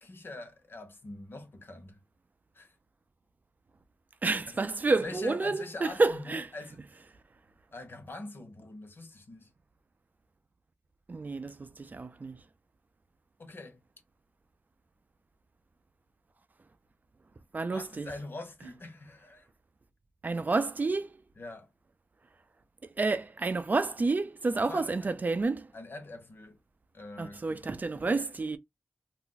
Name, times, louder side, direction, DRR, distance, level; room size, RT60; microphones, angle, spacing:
voice 1, 0.0-2.0 2.5-2.7 4.5-4.6 5.0-6.8 7.7-9.5 13.4-13.8 17.7-19.5 21.4-21.7 24.5-25.2 25.7-26.6 26.9-27.6 27.9-28.1, left 2 dB, 55° left, 0.9 m, -44 dB
voice 2, 4.2-6.5 11.1-12.4 17.5-18.1 20.2-21.2 23.0-25.7 27.2-28.6, right 3 dB, 40° right, 0.4 m, -29 dB
2.5 x 2.2 x 3.8 m
wide cardioid pair, 85°, 4 cm